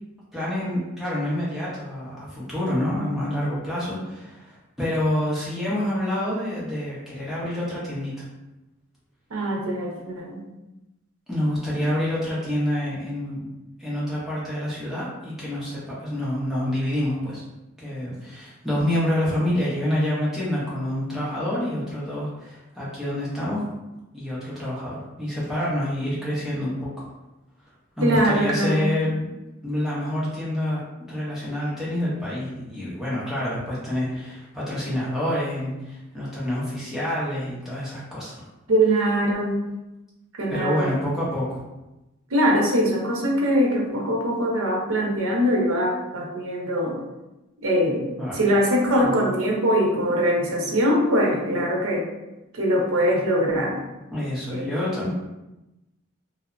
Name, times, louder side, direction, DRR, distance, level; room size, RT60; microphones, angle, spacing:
voice 1, 0.3-8.2 11.3-13.4 13.8-17.4 17.8-23.7 24.1-26.9 28.0-29.3 29.6-38.4 40.5-41.6 48.2-48.4 54.1-55.1, left 1 dB, ahead, -8 dB, 0.7 m, -27 dB
voice 2, 9.3-10.4 11.8-11.9 28.0-29.0 38.7-39.6 40.4-40.9 42.3-47.0 47.6-48.1 48.3-52.1 52.5-53.8 54.5-54.7, equal, 85° right, -1 dB, 0.6 m, -22 dB
3.1 x 2.0 x 2.4 m, 0.98 s
head